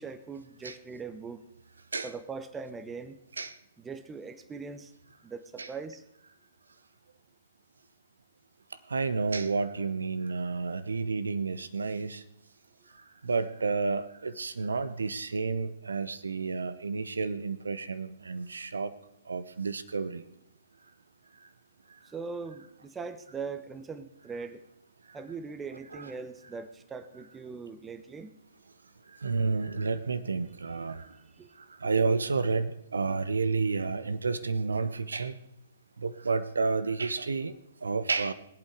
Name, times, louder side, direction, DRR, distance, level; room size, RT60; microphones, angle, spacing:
voice 1, 0.0-1.5 2.0-3.2 3.8-4.9 5.2-6.0 22.0-24.6 25.1-28.4 31.3-31.5 33.1-33.2, right 5 dB, 15° right, 11 dB, 1.0 m, -41 dB
voice 2, 8.9-12.2 13.2-18.9 19.3-20.2 25.9-26.1 29.2-31.0 31.8-35.4 36.0-37.5 37.8-38.3, right 4 dB, 75° right, 14 dB, 0.8 m, -30 dB
21.5 x 8.3 x 4.9 m, 0.80 s
figure-of-eight pair, 120°, 0 cm